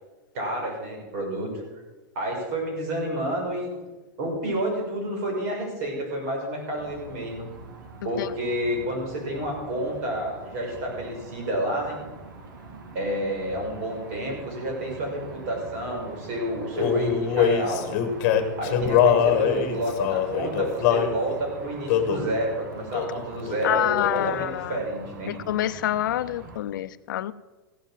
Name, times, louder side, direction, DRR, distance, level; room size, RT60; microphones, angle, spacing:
voice 1, 0.3-1.5 2.2-3.7 4.2-7.5 8.0-12.0 12.9-17.9 18.6-25.3, right 1 dB, 45° right, 0 dB, 5.7 m, -29 dB
sound 1, 6.8-26.6, right 4 dB, 75° right, 2.5 m, -43 dB
Male singing, 16.7-21.2 21.9-22.3 22.9-23.2 23.5-24.4, left 8 dB, 35° left, 1.6 m, -23 dB
voice 2, 23.6-24.8 25.3-27.3, left 13 dB, 80° left, 15 dB, 0.6 m, -27 dB
16.0 x 8.3 x 7.5 m, 1.2 s
supercardioid pair, 175°, 11 cm